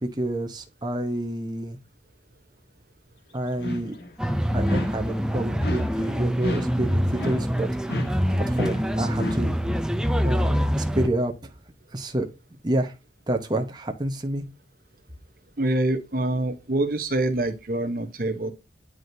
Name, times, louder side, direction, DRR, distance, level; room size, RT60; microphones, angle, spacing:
voice 1, 0.0-1.8 3.3-4.0 4.5-7.7 8.5-9.6 10.2-11.5 11.9-12.3 12.6-12.9 13.3-14.4, right 1 dB, 25° right, 1.0 m, -28 dB
sound 1, 3.5-4.1 4.6-5.2 5.6-9.5, left 1 dB, 65° left, 1.5 m, -33 dB
sound 2, 4.2-11.1, equal, 5° right, 0.4 m, -25 dB
voice 2, 15.6-18.5, right 2 dB, 50° right, 0.8 m, -25 dB
9.3 x 4.9 x 2.7 m
head